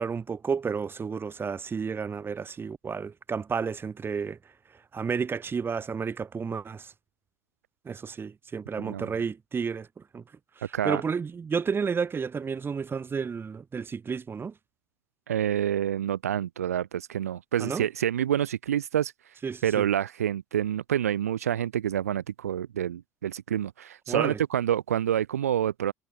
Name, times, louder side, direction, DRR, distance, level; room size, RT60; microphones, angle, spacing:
voice 1, 0.0-4.4 4.9-6.9 7.8-9.9 10.1-10.2 10.6-14.5 17.6-17.8 19.4-19.8 24.1-24.4, right 6 dB, 25° right, 1.4 m, -31 dB
voice 2, 8.8-9.1 10.7-11.0 15.3-19.1 19.6-25.9, right 10 dB, 80° right, 0.6 m, -27 dB
figure-of-eight pair, 60°, 8 cm